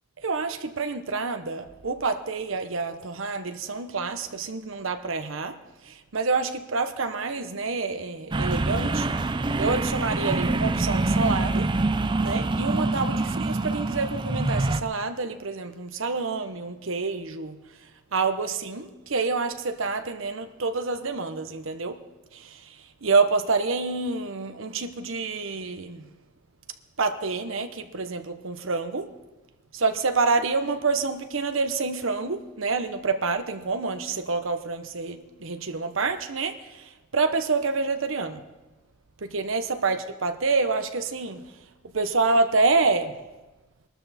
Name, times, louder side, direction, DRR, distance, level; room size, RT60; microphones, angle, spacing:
voice 1, 0.2-5.6 5.8-9.3 9.6-11.7 12.2-17.6 18.1-22.0 22.3-26.1 27.0-29.1 29.7-38.4 39.2-41.5 41.9-43.2, right 4 dB, 75° right, 1.0 m, -27 dB
sound 1, 8.3-14.8, right 2 dB, 25° right, 0.5 m, -25 dB
22.0 x 13.0 x 4.3 m
head